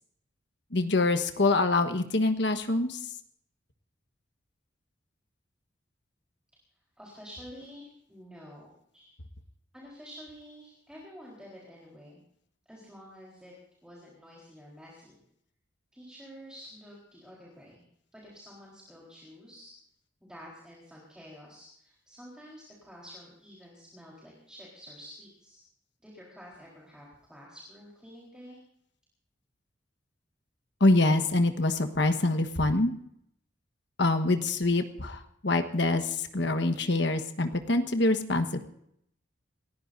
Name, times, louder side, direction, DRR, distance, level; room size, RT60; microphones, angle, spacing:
voice 1, 0.7-3.0 30.8-32.9 34.0-38.7, left 2 dB, 65° left, 8 dB, 1.3 m, -25 dB
voice 2, 7.0-9.1 9.7-12.2 12.7-13.5 13.8-15.2 15.9-17.8 18.1-19.7 20.2-25.6 26.0-28.6, equal, 5° right, -5 dB, 4.1 m, -49 dB
28.5 x 15.0 x 2.7 m, 0.72 s
head